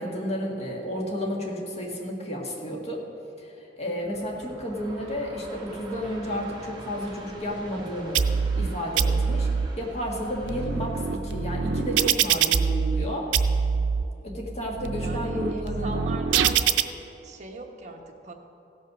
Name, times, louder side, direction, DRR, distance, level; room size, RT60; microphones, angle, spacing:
voice 1, 0.0-3.0 3.4-8.3 8.6-9.5 9.8-13.3 14.2-16.0, equal, 35° left, -1 dB, 1.7 m, -32 dB
Train, 3.9-13.1, right 1 dB, 25° right, 1.4 m, -45 dB
voice 2, 4.3-4.6 14.9-16.7 17.2-18.3, right 3 dB, 40° right, 1 dB, 1.1 m, -39 dB
sound 1, 8.1-8.7 9.0-9.7 10.3-13.1 13.3-14.0 14.6-16.8, right 6 dB, 90° right, 0.5 m, -24 dB
16.0 x 5.5 x 6.1 m, 2.8 s
head